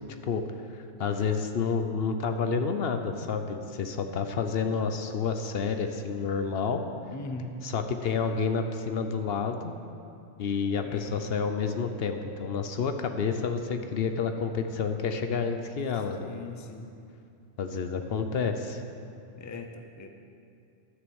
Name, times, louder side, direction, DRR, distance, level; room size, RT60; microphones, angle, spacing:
voice 1, 0.7-6.8 7.6-9.7 10.4-16.3 17.6-18.8, left 5 dB, 65° left, 7 dB, 0.8 m, -29 dB
voice 2, 7.1-7.6 10.8-11.2 16.2-16.9 19.4-20.1, left 3 dB, 20° left, 5 dB, 0.5 m, -40 dB
11.0 x 6.7 x 7.0 m, 2.5 s
omnidirectional pair, 1.2 m